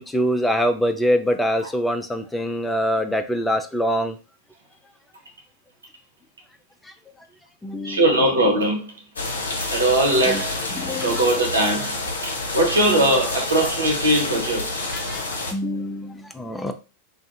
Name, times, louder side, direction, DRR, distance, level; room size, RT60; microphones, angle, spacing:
voice 1, 0.0-4.2 7.6-8.0 10.3-10.4 10.7-11.3 15.1-15.2 15.5-16.7, equal, 5° left, 0.4 m, -24 dB
voice 2, 7.8-8.9 9.7-10.6 11.0-11.9 12.2-14.7, right 1 dB, 75° right, 0.8 m, -20 dB
sound 1, 9.2-15.5, left 2 dB, 70° left, 0.6 m, -28 dB
2.5 x 2.4 x 2.6 m
figure-of-eight pair, 90°, 0 cm